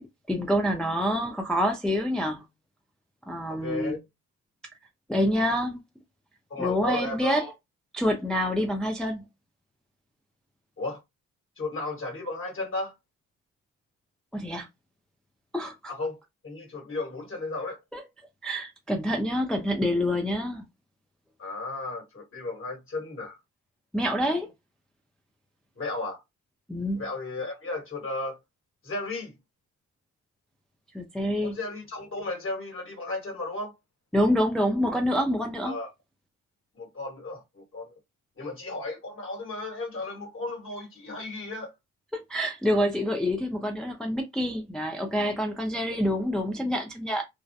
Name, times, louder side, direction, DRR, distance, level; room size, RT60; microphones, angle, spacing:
voice 1, 0.3-2.4 3.3-4.0 5.1-5.8 6.6-7.5 7.9-9.3 14.3-14.7 15.5-15.9 17.9-18.0 18.4-20.6 23.9-24.5 26.7-27.0 30.9-31.6 34.1-35.7 42.1-47.2, equal, 5° left, 0.4 m, -27 dB
voice 2, 3.6-4.0 6.5-7.5 10.8-11.0 11.6-12.9 15.9-17.8 21.4-23.4 25.8-26.2 27.0-28.4 28.8-29.3 31.4-33.7 35.6-35.9 36.7-38.0 38.4-41.7, left 2 dB, 45° left, 1.4 m, -34 dB
2.4 x 2.0 x 2.6 m
cardioid pair, 90°, 30 cm